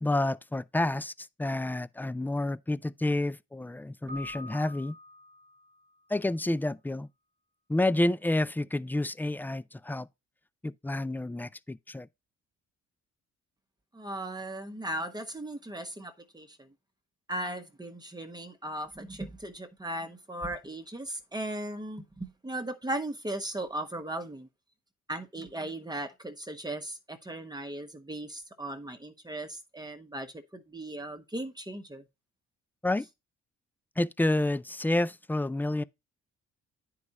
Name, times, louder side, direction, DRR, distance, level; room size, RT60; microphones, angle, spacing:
voice 1, 0.0-5.0 6.1-7.1 7.7-10.1 10.6-12.1 32.8-33.1 34.0-35.8, left 1 dB, 5° left, 0.3 m, -29 dB
Keyboard (musical), 4.1-5.9, left 1 dB, 35° right, 1.1 m, -46 dB
voice 2, 13.9-16.7 17.3-24.5 25.1-32.0, right 1 dB, 15° right, 1.2 m, -37 dB
9.4 x 4.9 x 4.1 m
cardioid pair, 90°, 30 cm